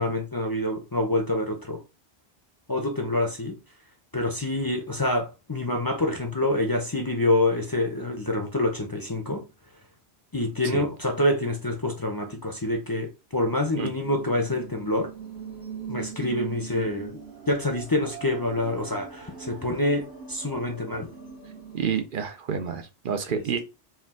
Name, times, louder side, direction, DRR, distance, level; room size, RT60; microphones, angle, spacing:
voice 1, 0.0-1.8 2.7-3.6 4.1-9.4 10.3-15.1 15.9-17.2 17.5-21.1 23.3-23.4, left 1 dB, 25° left, 0.6 m, -26 dB
sound 1, 14.0-22.0, right 7 dB, 75° right, 2.0 m, -41 dB
voice 2, 21.7-23.6, right 7 dB, 60° right, 0.7 m, -29 dB
4.4 x 2.4 x 3.6 m
omnidirectional pair, 1.1 m